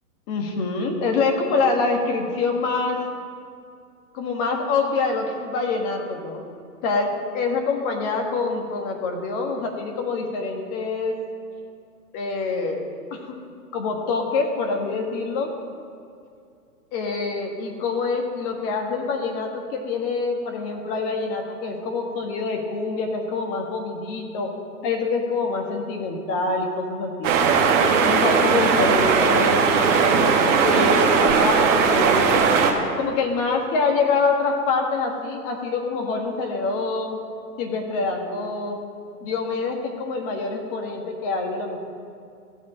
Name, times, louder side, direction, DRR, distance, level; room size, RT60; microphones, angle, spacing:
voice 1, 0.3-3.0 4.1-6.4 6.8-11.1 12.1-12.8 13.1-13.3 13.7-15.5 16.9-24.5 24.8-27.3 28.0-32.4 33.0-37.2 37.6-38.8 39.2-41.8, left 4 dB, 35° left, 2 dB, 1.6 m, -25 dB
sound 1, 27.2-32.7, right 5 dB, 50° right, 1.5 m, -18 dB
15.0 x 5.1 x 7.4 m, 2.4 s
hypercardioid pair, 135°, 47 cm